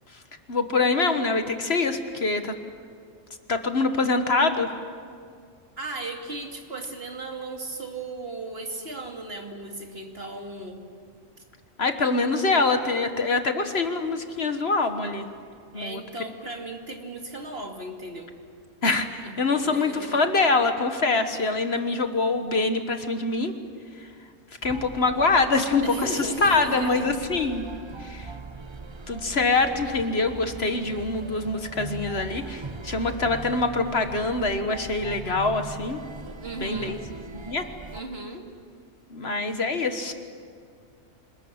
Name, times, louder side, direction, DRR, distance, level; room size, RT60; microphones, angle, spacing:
voice 1, 0.5-2.5 3.5-4.7 11.8-15.3 15.7-16.0 18.8-23.5 24.0-24.1 24.6-27.6 28.0-28.3 29.1-36.0 36.6-37.0 37.3-37.6 39.1-40.1, left 3 dB, 55° left, 7 dB, 1.6 m, -24 dB
voice 2, 5.8-10.8 15.7-18.3 19.2-20.2 25.8-27.1 36.4-37.0 37.9-38.5, right 2 dB, 50° right, 3 dB, 2.6 m, -36 dB
sound 1, 24.6-38.0, right 3 dB, 25° right, 0.7 m, -40 dB
26.5 x 20.5 x 8.8 m, 2.2 s
omnidirectional pair, 1.3 m